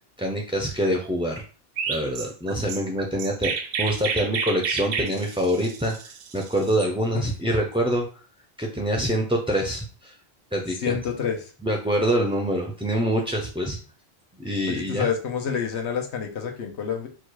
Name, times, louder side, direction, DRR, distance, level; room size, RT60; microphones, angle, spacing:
voice 1, 0.2-1.4 1.9-8.2 8.6-10.1 10.5-11.0 11.6-13.8 14.4-15.1, equal, 5° right, 0 dB, 0.4 m, -25 dB
Chirp tweet, 1.8-6.9, right 6 dB, 65° right, 0.8 m, -30 dB
voice 2, 10.8-11.5 14.7-17.1, left 7 dB, 90° left, 4 dB, 1.1 m, -28 dB
4.4 x 2.4 x 4.6 m, 0.37 s
omnidirectional pair, 1.1 m